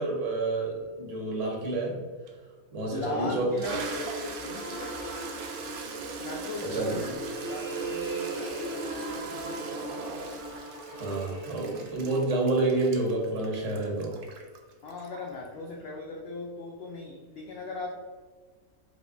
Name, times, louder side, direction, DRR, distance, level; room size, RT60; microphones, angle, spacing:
voice 1, 0.0-2.0 2.7-3.5 6.7-7.1 10.9-14.2, right 2 dB, 60° right, -2 dB, 1.3 m, -29 dB
Toilet flush, 2.3-2.4 3.0-15.5, right 3 dB, 80° right, 0.5 m, -39 dB
voice 2, 2.9-5.0 6.2-7.1 7.4-9.5 14.8-17.9, left 3 dB, 65° left, -1 dB, 0.6 m, -38 dB
sound 1, 4.4-6.2 6.9-13.0, right 2 dB, 50° left, 1.5 m, -39 dB
4.8 x 3.1 x 2.6 m, 1.5 s
omnidirectional pair, 1.5 m